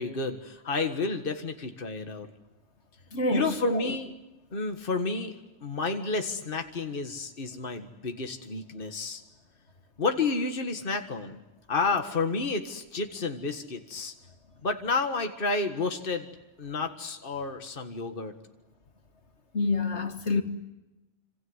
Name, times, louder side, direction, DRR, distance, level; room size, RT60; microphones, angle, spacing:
voice 1, 0.0-2.3 3.3-4.1 4.5-5.4 5.6-9.2 10.0-11.4 11.7-14.1 14.6-16.3 16.6-18.3, left 3 dB, 50° left, 2.0 m, -30 dB
voice 2, 3.1-3.9 19.5-20.4, left 3 dB, 75° left, 2.3 m, -27 dB
27.5 x 26.5 x 8.1 m
omnidirectional pair, 1.2 m